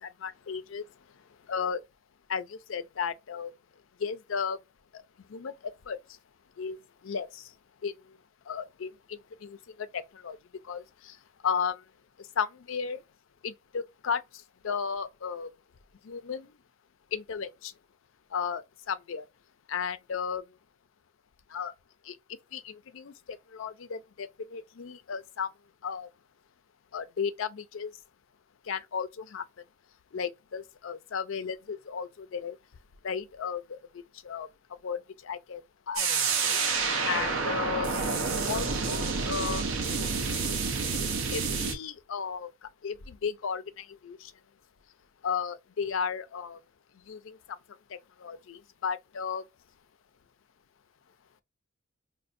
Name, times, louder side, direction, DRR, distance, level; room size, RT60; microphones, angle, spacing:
voice 1, 0.0-0.9 1.5-1.8 2.3-3.5 4.0-4.6 4.9-5.0 5.3-5.5 5.9-6.0 6.6-6.8 7.0-7.5 7.8-7.9 8.5-10.4 10.6-11.2 11.4-11.8 12.4-13.0 13.4-14.2 14.6-15.5 16.0-16.5 17.1-17.7 18.3-19.3 19.7-20.4 21.5-21.7 22.0-22.2 22.5-25.5 25.8-26.1 26.9-27.9 28.7-29.4 30.1-32.6 33.0-34.5 34.8-36.1 36.4-36.6 37.0-37.9 38.4-39.7 41.3-44.3 45.2-46.6 47.1-47.6 47.9-49.4, left 6 dB, 70° left, 0.5 m, -34 dB
sound 1, 36.0-41.7, right 4 dB, 75° right, 0.8 m, -29 dB
5.1 x 2.1 x 2.5 m
head